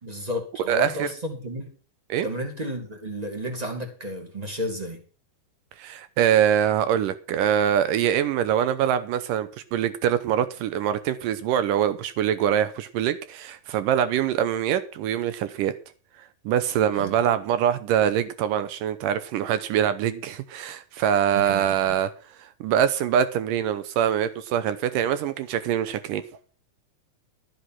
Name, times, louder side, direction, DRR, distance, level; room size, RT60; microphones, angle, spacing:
voice 1, 0.0-1.7 2.2-5.0 16.9-17.1 21.3-21.6, equal, 15° right, 1.7 m, -32 dB
voice 2, 0.7-1.1 2.1-2.3 5.8-15.7 16.2-26.3, right 9 dB, 75° right, 2.1 m, -24 dB
13.5 x 8.0 x 5.8 m
omnidirectional pair, 4.5 m